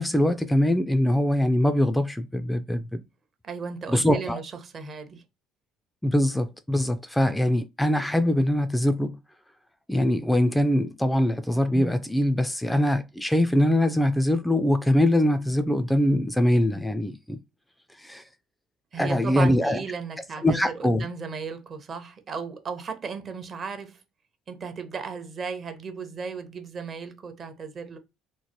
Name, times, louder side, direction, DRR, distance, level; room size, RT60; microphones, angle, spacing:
voice 1, 0.0-3.0 3.9-4.4 6.0-9.2 9.9-17.4 18.0-18.2 19.0-19.8 20.4-21.0, left 1 dB, 5° left, 0.3 m, -23 dB
voice 2, 3.4-5.2 18.9-24.0 24.5-28.0, right 5 dB, 45° right, 0.7 m, -35 dB
3.0 x 2.1 x 2.8 m
hypercardioid pair, 60°, 0 cm